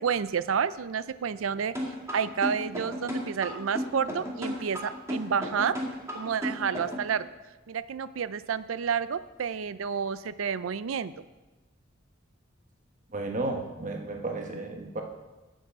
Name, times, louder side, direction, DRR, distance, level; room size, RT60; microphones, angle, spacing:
voice 1, 0.0-1.7 2.1-5.8 6.1-7.3 7.7-11.1, right 7 dB, 85° right, 15 dB, 0.4 m, -30 dB
sound 1, 1.8-7.1, equal, 15° right, 2.2 m, -33 dB
voice 2, 13.1-15.0, right 2 dB, 40° right, 3 dB, 1.2 m, -33 dB
11.0 x 8.3 x 4.8 m, 1.1 s
head